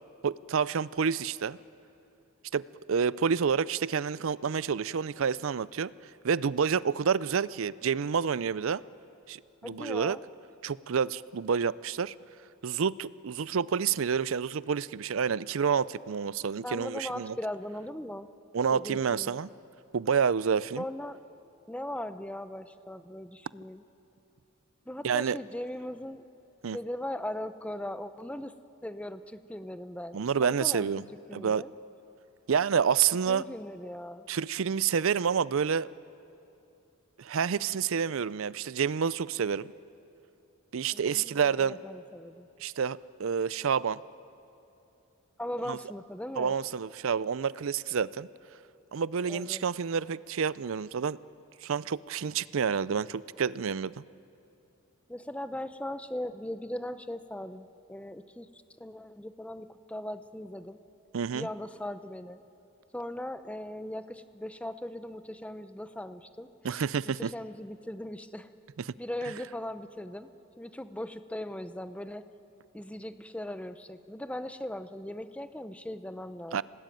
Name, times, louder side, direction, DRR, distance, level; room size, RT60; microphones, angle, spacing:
voice 1, 0.2-1.6 2.5-2.6 2.9-5.9 6.2-8.8 9.3-10.2 10.6-12.1 12.6-17.4 18.5-19.5 19.9-20.8 25.0-25.4 26.6-26.8 30.1-31.0 31.3-31.6 32.5-33.4 34.3-35.9 37.2-39.7 40.7-41.8 42.6-44.0 45.7-45.8 46.4-48.3 48.9-51.2 51.6-53.9 61.1-61.5 66.6-67.3 68.9-69.0 76.5-76.6, right 6 dB, 65° right, 19 dB, 0.5 m, -28 dB
voice 2, 9.6-10.2 16.6-18.3 18.7-19.4 20.7-21.2 21.7-23.8 24.9-26.2 26.7-28.5 28.8-30.9 31.3-31.7 33.3-34.3 40.9-42.5 45.4-46.5 49.3-49.6 55.1-60.8 61.3-62.4 62.9-68.5 69.0-70.3 70.6-72.2 72.7-76.6, left 1 dB, 5° left, 11 dB, 0.7 m, -39 dB
26.5 x 18.5 x 9.2 m, 2.7 s
head